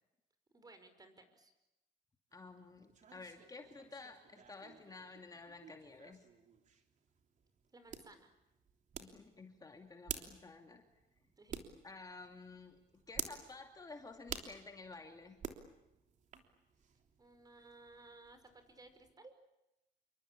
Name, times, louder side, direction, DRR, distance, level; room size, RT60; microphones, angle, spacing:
voice 1, 0.5-1.5 7.7-8.3 11.4-11.6 17.2-19.3, right 2 dB, 20° right, 9 dB, 5.3 m, -58 dB
voice 2, 2.3-6.3 9.0-10.8 11.8-12.8 13.1-15.4, left 3 dB, 20° left, 4 dB, 2.6 m, -52 dB
sound 1, 2.3-19.1, right 7 dB, 45° right, 3.3 m, -51 dB
28.0 x 23.5 x 8.7 m, 0.91 s
cardioid pair, 110°, 17 cm